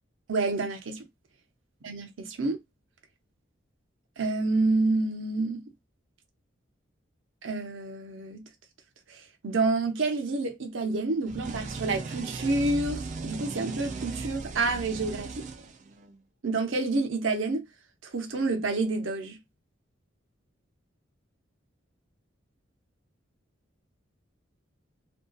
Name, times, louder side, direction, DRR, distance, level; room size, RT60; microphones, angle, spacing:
voice 1, 0.3-1.0 1.8-2.6 4.2-5.6 7.4-8.4 9.1-15.4 16.4-17.7 18.0-19.4, right 3 dB, 80° right, 0.7 m, -28 dB
sound 1, 11.3-16.2, right 3 dB, 40° right, 0.4 m, -37 dB
2.7 x 2.2 x 2.2 m
head